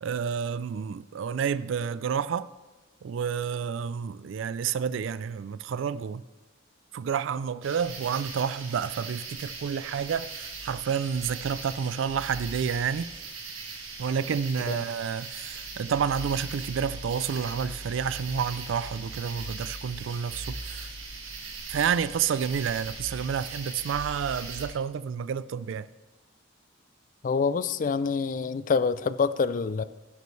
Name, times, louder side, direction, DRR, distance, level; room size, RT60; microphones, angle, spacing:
voice 1, 0.0-2.5 3.0-6.2 6.9-13.1 14.0-20.9 21.7-25.9, right 7 dB, 75° right, 0.3 m, -29 dB
sound 1, 7.6-24.7, right 3 dB, 90° right, 2.0 m, -39 dB
voice 2, 27.2-29.8, left 5 dB, 40° left, 0.3 m, -26 dB
12.0 x 10.5 x 3.2 m
head